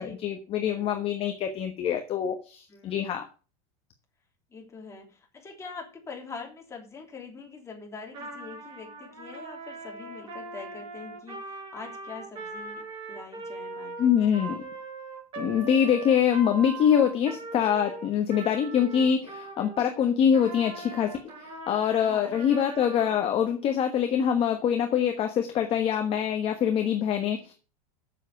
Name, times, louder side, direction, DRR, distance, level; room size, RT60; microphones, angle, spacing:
voice 1, 0.0-3.2 14.0-14.7 15.4-27.5, left 8 dB, 30° left, 5 dB, 1.2 m, -25 dB
voice 2, 0.6-1.0 2.7-3.1 4.5-14.4 22.0-22.4, left 4 dB, 15° left, 1 dB, 3.0 m, -44 dB
Trumpet, 8.1-19.8 20.3-23.3, right 3 dB, 30° right, 5.1 m, -40 dB
7.4 x 7.3 x 8.1 m, 0.36 s
supercardioid pair, 145°, 19 cm